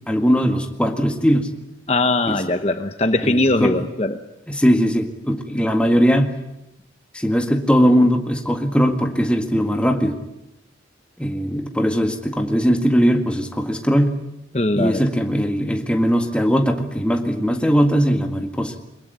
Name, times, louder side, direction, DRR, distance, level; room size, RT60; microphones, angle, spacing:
voice 1, 0.1-1.5 2.3-2.4 3.2-3.9 4.5-6.3 7.1-10.2 11.2-14.2 14.7-18.7, equal, 5° left, 4 dB, 1.8 m, -19 dB
voice 2, 1.9-4.2 14.5-15.0, left 2 dB, 35° left, 8 dB, 1.0 m, -20 dB
22.5 x 21.0 x 9.5 m, 0.86 s
head